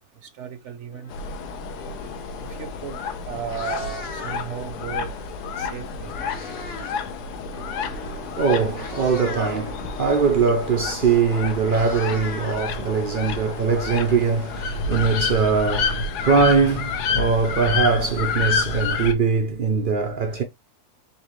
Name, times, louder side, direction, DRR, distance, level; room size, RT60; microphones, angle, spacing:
voice 1, 0.2-1.1 2.5-3.0 3.3-5.1 5.6-6.1, right 8 dB, 60° right, 0.8 m, -34 dB
sound 1, 0.9-14.8, left 1 dB, 40° left, 0.9 m, -45 dB
sound 2, 1.1-19.1, left 5 dB, 85° left, 1.2 m, -29 dB
Meow, 3.5-4.6 5.7-7.0 7.3-7.6 8.3-8.4 8.7-9.6 10.9-11.0 11.3-13.2, left 4 dB, 60° left, 1.5 m, -38 dB
voice 2, 7.9-20.4, right 5 dB, 75° right, 0.4 m, -22 dB
4.1 x 3.3 x 3.0 m
omnidirectional pair, 1.7 m